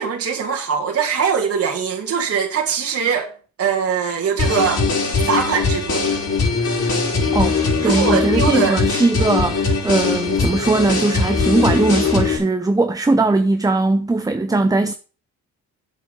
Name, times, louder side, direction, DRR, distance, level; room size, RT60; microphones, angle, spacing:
voice 1, 0.0-3.3 3.6-4.9 5.2-6.1 7.8-8.8, right 7 dB, 50° right, 2.2 m, -21 dB
sound 1, 4.4-12.4, left 4 dB, 55° left, 5.3 m, -20 dB
voice 2, 7.8-14.9, right 2 dB, 10° right, 0.8 m, -19 dB
8.3 x 7.5 x 7.0 m
cardioid pair, 90°, 30 cm